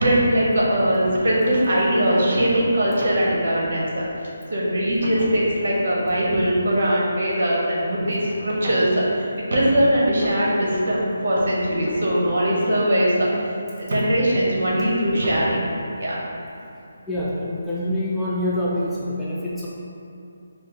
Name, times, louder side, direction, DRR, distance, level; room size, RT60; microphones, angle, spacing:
voice 1, 0.0-4.0 4.5-13.3 13.8-15.7 16.0-16.2, equal, 65° right, -4 dB, 1.2 m, -21 dB
voice 2, 17.1-19.7, left 1 dB, ahead, -10 dB, 0.3 m, -25 dB
5.3 x 2.0 x 4.0 m, 2.6 s
hypercardioid pair, 170°, 0 cm